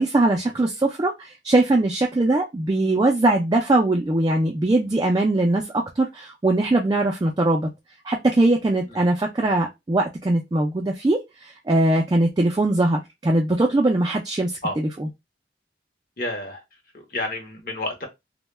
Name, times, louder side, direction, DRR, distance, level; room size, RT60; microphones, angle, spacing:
voice 1, 0.0-7.7 8.0-15.1, right 2 dB, 25° right, 0.3 m, -21 dB
voice 2, 16.2-16.6 16.9-18.1, left 1 dB, 55° left, 0.7 m, -30 dB
2.1 x 2.1 x 3.2 m
head